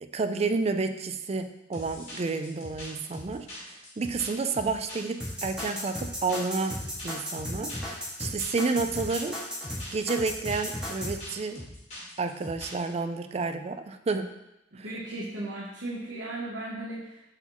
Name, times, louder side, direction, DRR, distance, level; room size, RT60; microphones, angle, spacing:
voice 1, 0.0-3.5 4.0-6.8 7.0-9.4 9.9-11.6 12.2-14.3 14.8-14.9, right 4 dB, 35° right, 8 dB, 0.4 m, -30 dB
sound 1, 1.7-12.9, left 1 dB, 40° left, 2.3 m, -43 dB
sound 2, 5.2-11.1, equal, 5° right, 1.8 m, -34 dB
voice 2, 14.7-17.2, right 2 dB, 80° right, -6 dB, 1.1 m, -36 dB
7.8 x 4.1 x 3.0 m, 0.90 s
head